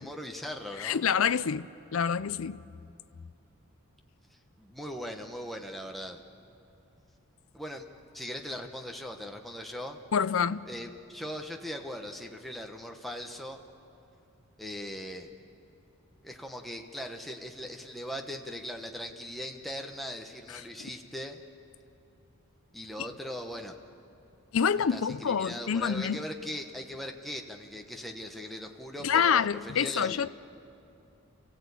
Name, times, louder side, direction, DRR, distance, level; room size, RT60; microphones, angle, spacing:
voice 1, 0.0-1.0 4.6-6.2 7.5-7.8 8.1-10.0 10.7-13.6 14.6-15.3 16.2-21.4 22.7-23.7 24.9-30.2, equal, ahead, 1.2 m, -39 dB
voice 2, 0.8-2.6 10.1-10.7 20.8-20.9 23.0-23.1 24.5-26.2 29.0-30.3, left 7 dB, 70° left, 0.5 m, -27 dB
29.0 x 15.5 x 8.4 m
head